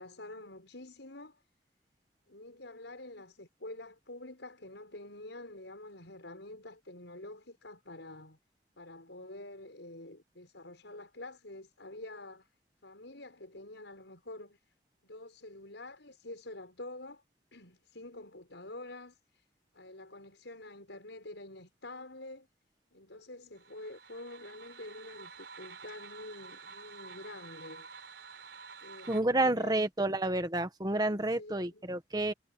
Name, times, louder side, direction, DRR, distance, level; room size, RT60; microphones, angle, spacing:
voice 1, 0.0-1.4 2.3-8.4 8.8-12.5 12.8-14.6 15.0-17.2 17.5-19.4 19.7-22.5 22.9-27.9 28.8-29.9 31.4-31.9, left 2 dB, 85° left, 6.3 m, -47 dB
sound 1, 23.6-29.2, right 5 dB, 85° right, 4.2 m, -50 dB
voice 2, 29.1-32.3, right 2 dB, 20° right, 1.6 m, -30 dB
head